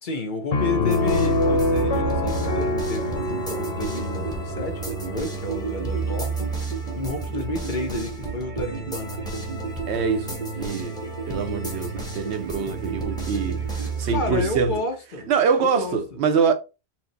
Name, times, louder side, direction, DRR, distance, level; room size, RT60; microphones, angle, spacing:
voice 1, 0.0-6.5 6.9-9.2 14.1-15.3 15.6-16.0, left 3 dB, 50° left, 0.9 m, -31 dB
Piano, 0.5-6.0, left 2 dB, 85° left, 1.2 m, -26 dB
sound 1, 0.8-14.8, right 5 dB, 45° right, 0.7 m, -33 dB
sound 2, 0.9-14.0, right 2 dB, 5° left, 0.9 m, -34 dB
voice 2, 9.9-11.0 11.3-14.7 15.3-16.5, right 6 dB, 75° right, 0.9 m, -24 dB
4.5 x 2.0 x 4.0 m
omnidirectional pair, 1.1 m